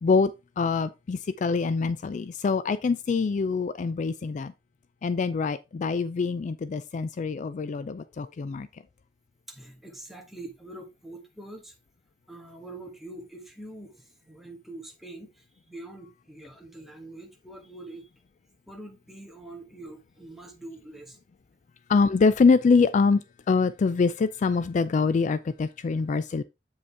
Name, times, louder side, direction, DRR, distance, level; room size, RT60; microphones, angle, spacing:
voice 1, 0.6-4.5 5.0-8.7 21.9-23.2 23.5-26.4, left 4 dB, 45° left, 0.3 m, -24 dB
voice 2, 9.5-11.7 12.3-18.1 18.7-21.2, right 2 dB, ahead, 1.6 m, -44 dB
8.1 x 5.1 x 3.4 m
head